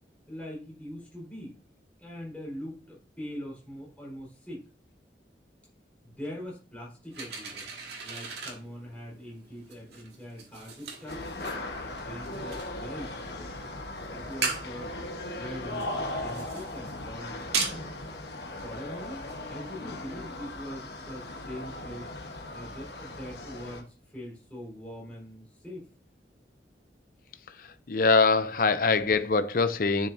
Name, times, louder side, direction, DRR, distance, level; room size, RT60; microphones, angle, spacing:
voice 1, 0.3-1.6 2.0-4.7 6.0-7.7 8.0-11.5 12.0-14.9 15.3-17.8 18.6-22.1 22.5-25.9, equal, 10° left, 4.4 m, -42 dB
sound 1, 7.1-19.4, right 5 dB, 75° right, 2.1 m, -39 dB
sound 2, 11.1-23.8, left 2 dB, 75° left, 1.3 m, -38 dB
voice 2, 27.9-30.1, left 4 dB, 50° left, 0.6 m, -23 dB
10.0 x 6.7 x 2.7 m
head